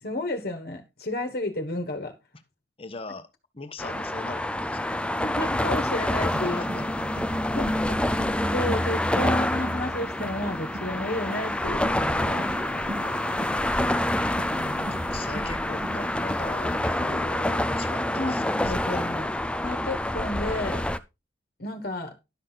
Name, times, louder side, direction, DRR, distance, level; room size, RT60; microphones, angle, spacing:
voice 1, 0.0-2.1 5.2-6.6 7.5-8.1 8.5-12.5 14.5-14.9 18.1-19.3 19.6-20.8 21.6-22.1, left 1 dB, 60° left, 1.5 m, -32 dB
voice 2, 2.8-3.3 3.5-5.0 6.4-6.8 7.2-7.3 13.0-14.0 14.4-19.1, left 3 dB, 30° left, 1.3 m, -40 dB
sound 1, 3.8-21.0, left 1 dB, 5° left, 0.5 m, -27 dB
sound 2, 6.3-16.7, right 1 dB, 35° right, 1.7 m, -40 dB
12.0 x 6.3 x 4.0 m
head